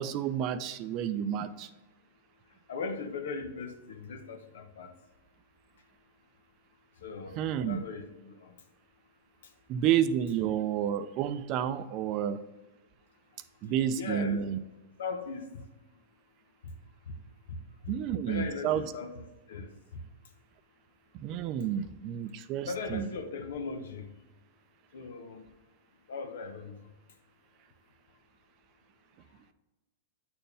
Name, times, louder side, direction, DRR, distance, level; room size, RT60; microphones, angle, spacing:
voice 1, 0.0-1.7 7.4-7.8 9.7-12.4 13.6-14.6 17.9-18.8 21.2-23.1, right 9 dB, 40° right, 12 dB, 0.5 m, -30 dB
voice 2, 2.7-4.9 7.0-8.5 13.6-14.4 15.0-15.6 18.3-19.1 19.5-19.7 22.6-24.1 24.9-25.4 26.1-26.8, left 4 dB, 75° left, 6 dB, 1.0 m, -38 dB
8.9 x 4.4 x 3.4 m, 1.1 s
hypercardioid pair, 120°, 0 cm